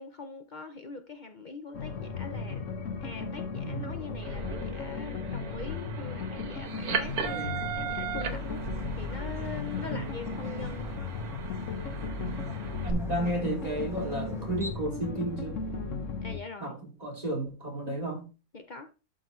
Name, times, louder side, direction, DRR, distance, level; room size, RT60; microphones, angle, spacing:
voice 1, 0.0-2.6 3.0-8.6 9.0-11.0 16.2-16.7 18.5-18.9, left 4 dB, 80° left, 0.4 m, -42 dB
sound 1, 1.7-16.4, left 4 dB, 55° left, 1.2 m, -36 dB
voice 2, 3.6-4.0 7.3-7.7 9.8-10.0 12.2-12.4 12.8-15.6 16.6-18.3, right 2 dB, 25° right, 2.7 m, -33 dB
sound 2, 4.2-12.9, right 6 dB, 70° right, 1.6 m, -38 dB
sound 3, 6.6-14.7, equal, ahead, 1.4 m, -49 dB
12.0 x 4.5 x 3.1 m
omnidirectional pair, 1.7 m